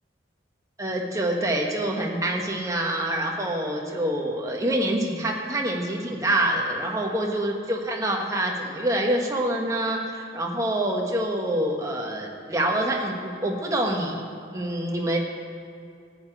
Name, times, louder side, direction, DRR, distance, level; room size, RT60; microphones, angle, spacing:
voice 1, 0.8-15.2, right 1 dB, 15° right, 0 dB, 1.4 m, -26 dB
14.0 x 5.9 x 9.1 m, 2.4 s
head